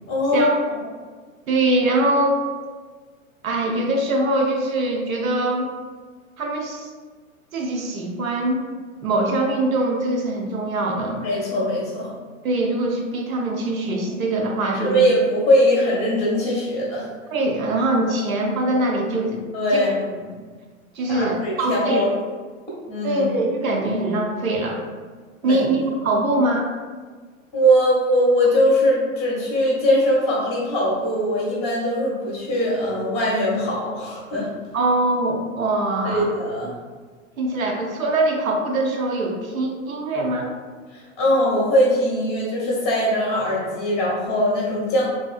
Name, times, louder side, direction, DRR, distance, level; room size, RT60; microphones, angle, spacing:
voice 1, 0.1-0.8 11.2-12.1 14.8-17.1 19.5-20.2 21.1-22.1 22.9-23.2 25.4-25.6 27.5-34.5 36.0-36.7 40.9-45.1, equal, 15° left, -5 dB, 0.7 m, -21 dB
voice 2, 1.5-2.4 3.4-5.7 6.4-6.9 7.5-8.6 9.0-11.2 12.4-15.0 17.3-19.4 19.7-19.9 20.9-22.0 23.0-24.8 25.4-26.7 34.7-36.3 37.4-40.5, right 2 dB, 80° right, 1 dB, 0.6 m, -23 dB
2.6 x 2.3 x 2.4 m, 1.5 s
figure-of-eight pair, 100°, 41 cm